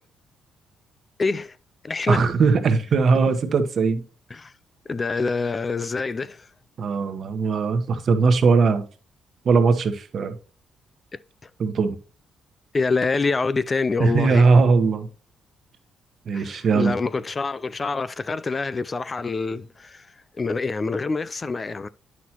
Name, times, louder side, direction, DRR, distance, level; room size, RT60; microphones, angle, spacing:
voice 1, 1.2-1.6 1.8-2.3 4.3-4.5 4.9-6.5 11.4-11.5 12.7-14.5 16.3-21.9, left 4 dB, 30° left, 0.3 m, -26 dB
voice 2, 2.1-4.0 6.8-8.8 9.4-10.3 11.6-11.9 14.0-15.1 16.3-16.9, right 4 dB, 55° right, 1.1 m, -19 dB
9.2 x 6.0 x 2.9 m
cardioid pair, 90°, 0 cm